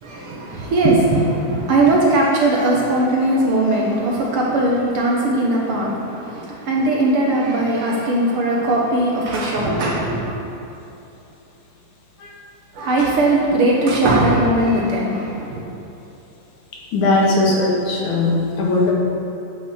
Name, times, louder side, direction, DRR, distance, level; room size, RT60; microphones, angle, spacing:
voice 1, 0.0-10.3 12.7-15.6, right 2 dB, 60° right, -3 dB, 1.7 m, -19 dB
voice 2, 16.9-18.9, left 2 dB, 85° left, -4 dB, 3.1 m, -18 dB
9.4 x 6.3 x 6.3 m, 3.0 s
omnidirectional pair, 3.3 m